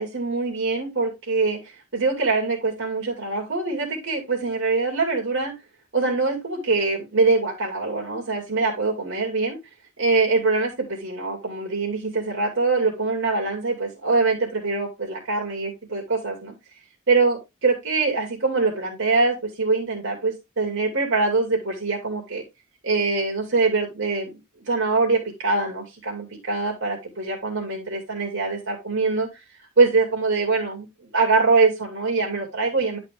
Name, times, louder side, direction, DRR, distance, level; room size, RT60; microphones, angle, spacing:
voice 1, 0.0-1.6 1.9-5.5 5.9-9.6 10.0-16.5 17.1-22.4 22.8-24.4 24.7-29.3 29.8-30.9 31.1-33.0, right 3 dB, 60° right, 2.7 m, -23 dB
11.0 x 4.3 x 3.5 m
head